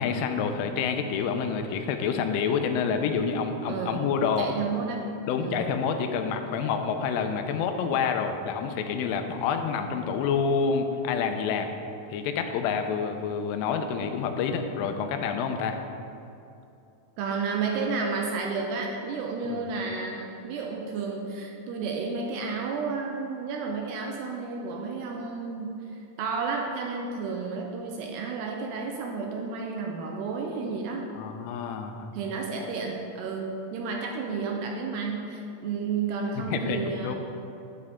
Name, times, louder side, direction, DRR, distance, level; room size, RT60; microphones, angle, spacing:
voice 1, 0.0-4.5 5.3-11.7 12.1-15.8 19.5-19.6 31.2-32.1 36.4-37.2, left 6 dB, 85° left, 6 dB, 3.2 m, -28 dB
voice 2, 3.7-4.0 4.4-5.1 5.4-5.7 17.2-31.0 32.1-37.1, right 4 dB, 80° right, 1 dB, 2.5 m, -31 dB
11.5 x 9.6 x 3.6 m, 2.7 s
omnidirectional pair, 5.6 m